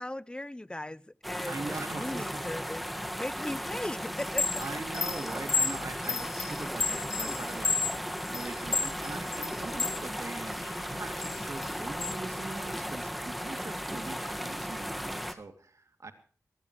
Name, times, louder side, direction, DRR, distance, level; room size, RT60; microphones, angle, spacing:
voice 1, 0.0-4.6 6.8-7.4 9.7-9.8, left 1 dB, 15° left, 0.7 m, -38 dB
sound 1, 1.2-15.3, equal, ahead, 1.8 m, -36 dB
voice 2, 1.5-2.4 4.6-16.1, right 3 dB, 65° right, 2.7 m, -42 dB
Chime, 4.2-10.0 10.5-12.1, left 4 dB, 70° left, 0.8 m, -32 dB
21.5 x 18.5 x 3.2 m
wide cardioid pair, 60°, 6 cm